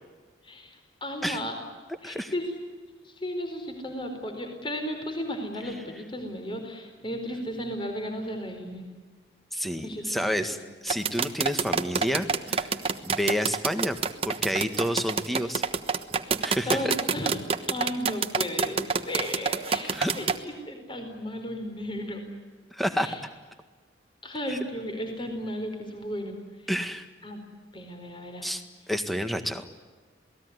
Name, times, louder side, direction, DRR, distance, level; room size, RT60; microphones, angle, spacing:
voice 1, 0.4-1.6 2.0-2.5 3.0-8.8 9.8-10.3 16.6-17.4 17.7-22.2 23.0-23.2 24.2-26.4 27.2-27.4 27.7-28.5, equal, 25° left, 4 dB, 4.5 m, -34 dB
voice 2, 9.5-10.6 10.8-12.8 13.0-14.0 14.3-15.6 16.4-16.9 19.9-20.1 22.7-23.2 24.5-24.6 26.7-27.1 28.4-28.6 28.9-29.7, equal, ahead, 8 dB, 1.7 m, -29 dB
sound 1, 10.9-20.4, right 5 dB, 30° right, 1.2 m, -27 dB
28.0 x 19.5 x 9.6 m, 1.4 s
head